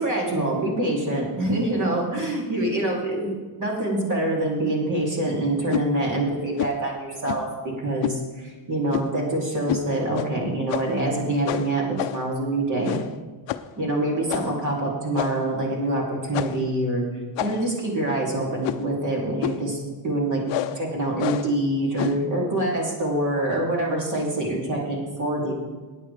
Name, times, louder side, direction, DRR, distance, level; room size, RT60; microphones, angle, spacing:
voice 1, 0.0-7.5 7.8-13.0 13.8-17.0 17.4-20.4 20.7-25.5, right 1 dB, 40° right, -3 dB, 3.1 m, -25 dB
sound 1, 5.7-5.9 6.6-6.8 7.2-7.5 8.0-8.2 8.9-9.2 9.7-9.9 10.1-10.3 10.7-11.0 11.5-12.3 12.8-13.2 13.5-13.7 14.3-14.6 15.1-15.5 16.3-16.7 17.4-17.8 18.6-18.9 19.4-19.7 20.5-20.8 21.2-21.6 22.0-22.3, left 12 dB, 65° left, 0.6 m, -29 dB
17.0 x 9.3 x 3.4 m, 1.3 s
cardioid pair, 160°, 47 cm